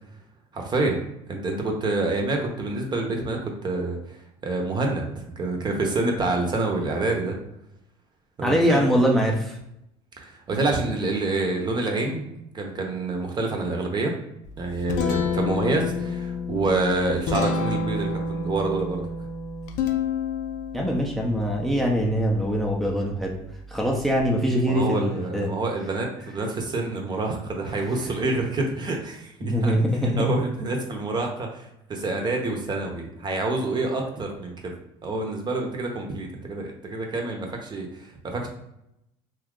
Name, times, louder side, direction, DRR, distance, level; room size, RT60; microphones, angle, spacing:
voice 1, 0.5-4.2 4.4-7.4 8.4-8.8 10.2-12.3 12.5-14.2 14.6-19.1 24.7-29.8 30.2-34.7 35.0-38.5, right 2 dB, 30° right, 2 dB, 0.8 m, -27 dB
voice 2, 8.4-9.6 20.7-23.4 23.7-25.5 29.4-30.3, equal, ahead, -1 dB, 0.6 m, -23 dB
Guitar, 14.4-24.2, left 4 dB, 65° left, 0.5 m, -30 dB
2.8 x 2.4 x 3.6 m, 0.82 s
supercardioid pair, 95°, 14 cm